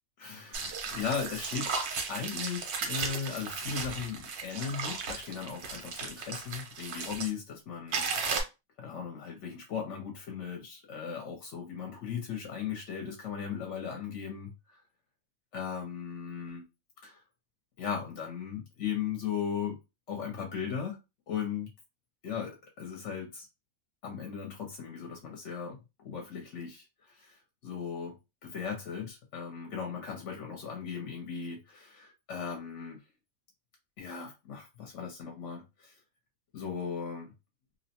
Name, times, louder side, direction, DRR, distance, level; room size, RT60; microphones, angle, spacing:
voice 1, 0.2-1.7 2.1-8.4 8.8-14.8 15.5-16.6 17.0-17.2 17.8-19.8 20.1-21.0 21.3-21.7 22.2-23.5 24.0-28.1 28.4-33.0 34.0-35.9 36.5-37.3, left 7 dB, 60° left, 0.9 m, -37 dB
sound 1, 0.5-7.3 7.9-8.4, right 5 dB, 85° right, 1.2 m, -35 dB
2.7 x 2.0 x 2.7 m
omnidirectional pair, 1.6 m